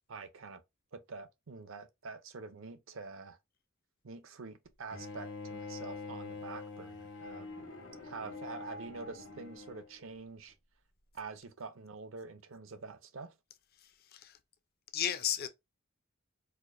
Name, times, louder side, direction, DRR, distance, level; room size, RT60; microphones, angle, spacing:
voice 1, 0.1-0.6 0.9-3.4 4.0-7.7 8.0-10.6 11.1-13.3, right 4 dB, 70° right, 0.6 m, -46 dB
Bowed string instrument, 4.9-9.9, left 3 dB, 70° left, 1.2 m, -45 dB
voice 2, 13.8-14.4 14.9-15.5, left 10 dB, 45° left, 0.5 m, -35 dB
4.3 x 2.5 x 2.4 m
head